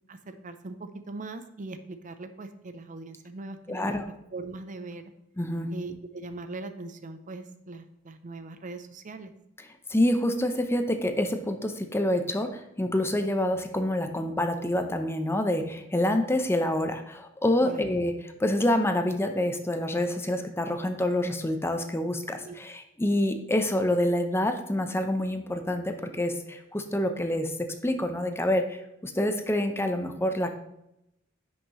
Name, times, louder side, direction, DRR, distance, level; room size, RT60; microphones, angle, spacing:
voice 1, 0.1-4.0 4.3-5.0 5.7-9.3 17.6-17.8 22.4-22.5, right 3 dB, 40° right, 9 dB, 0.6 m, -40 dB
voice 2, 3.7-4.1 5.4-5.7 9.9-30.5, left 1 dB, 10° left, 6 dB, 0.7 m, -27 dB
10.0 x 6.3 x 3.1 m, 0.82 s
head